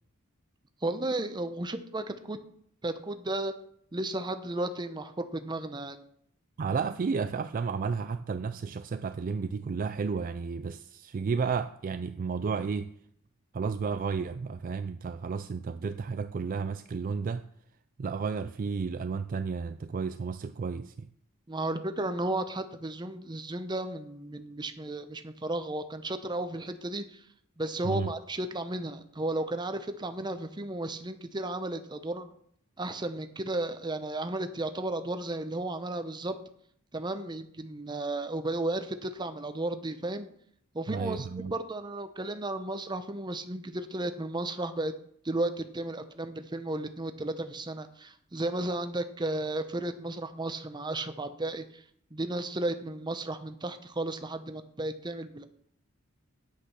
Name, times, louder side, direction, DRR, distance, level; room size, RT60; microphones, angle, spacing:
voice 1, 0.8-2.4 2.8-3.5 3.9-6.0 21.5-27.2 27.6-32.3 32.8-36.4 36.9-40.3 40.7-44.9 45.2-51.8 52.1-55.5, right 2 dB, 20° right, 0.8 m, -34 dB
voice 2, 6.6-12.9 13.5-17.5 18.0-21.1 27.8-28.1 40.9-41.5, right 5 dB, 40° right, 0.3 m, -32 dB
8.5 x 8.2 x 5.9 m
head